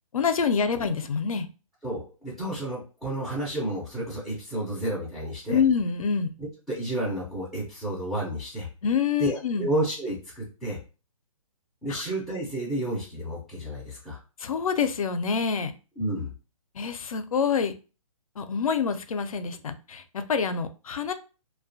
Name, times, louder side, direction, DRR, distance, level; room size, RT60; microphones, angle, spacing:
voice 1, 0.1-1.5 5.5-6.3 8.8-9.7 11.9-12.0 14.4-15.7 16.7-17.7 18.4-21.1, left 6 dB, 75° left, 9 dB, 0.4 m, -26 dB
voice 2, 1.8-5.6 6.4-8.7 9.2-10.8 11.8-14.2 16.0-16.3, right 1 dB, ahead, -8 dB, 0.3 m, -31 dB
2.4 x 2.2 x 2.5 m, 0.34 s
hypercardioid pair, 145°, 18 cm